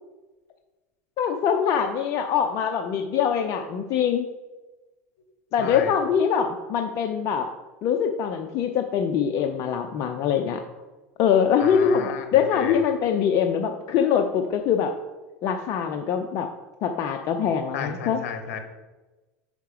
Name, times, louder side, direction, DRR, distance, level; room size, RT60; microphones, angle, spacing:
voice 1, 1.2-4.3 5.5-7.5 7.8-10.6 11.2-14.9 15.4-16.5 16.8-18.2, left 7 dB, 50° left, 5 dB, 0.6 m, -23 dB
voice 2, 5.6-6.0 11.6-12.8 17.7-18.6, left 7 dB, 70° left, 6 dB, 1.0 m, -33 dB
5.6 x 5.1 x 4.9 m, 1.2 s
hypercardioid pair, 95°, 8 cm